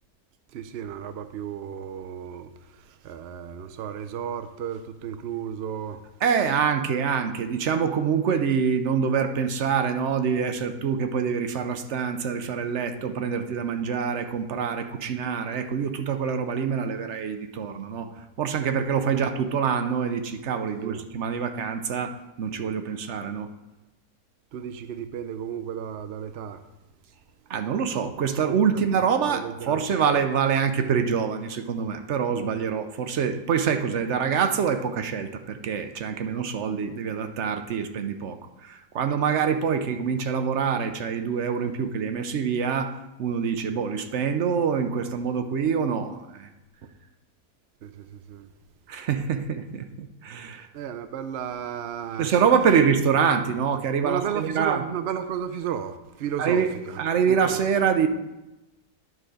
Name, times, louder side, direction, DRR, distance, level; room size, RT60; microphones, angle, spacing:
voice 1, 0.5-6.0 19.1-19.2 20.8-21.1 24.5-26.6 28.7-28.8 29.2-29.9 47.8-48.5 50.7-52.3 54.0-57.0 57.3-57.6, right 9 dB, 75° right, 0.5 m, -34 dB
voice 2, 6.2-18.1 18.4-23.5 27.5-46.5 48.9-50.7 52.2-54.8 56.4-56.7 57.0-58.1, right 6 dB, 60° right, 0.9 m, -25 dB
10.0 x 4.7 x 6.4 m
omnidirectional pair, 1.7 m